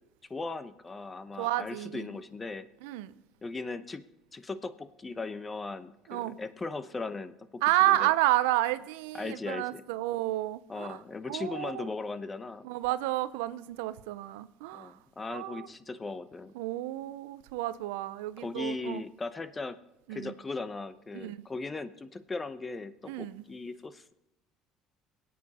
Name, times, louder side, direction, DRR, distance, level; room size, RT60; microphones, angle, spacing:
voice 1, 0.3-2.7 3.4-4.0 4.3-8.1 9.2-9.8 10.7-12.6 14.7-16.5 18.4-19.8 20.1-24.1, left 3 dB, 25° left, 0.9 m, -38 dB
voice 2, 1.4-2.1 2.8-3.1 6.1-6.4 7.6-11.9 12.6-15.0 15.3-15.7 16.5-19.0 20.1-20.3 21.1-21.4 23.1-23.4, right 16 dB, 85° right, 0.6 m, -31 dB
22.0 x 8.6 x 4.2 m
supercardioid pair, 80°, 0 cm